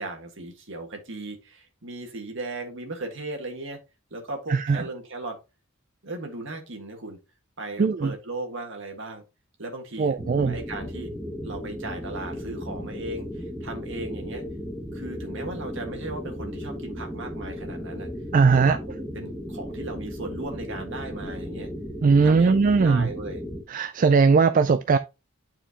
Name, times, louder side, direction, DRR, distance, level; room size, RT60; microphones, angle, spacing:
voice 1, 0.0-3.8 4.1-5.4 6.0-7.2 7.6-9.2 9.6-11.1 11.4-14.4 14.9-18.1 18.5-21.7 22.2-23.4, right 2 dB, 60° right, 1.7 m, -37 dB
voice 2, 4.5-4.8 7.8-8.1 10.0-10.6 18.3-18.8 22.0-23.1 23.7-25.0, right 4 dB, 40° right, 0.3 m, -19 dB
sound 1, 10.2-23.6, equal, ahead, 1.1 m, -35 dB
8.9 x 4.5 x 2.9 m
head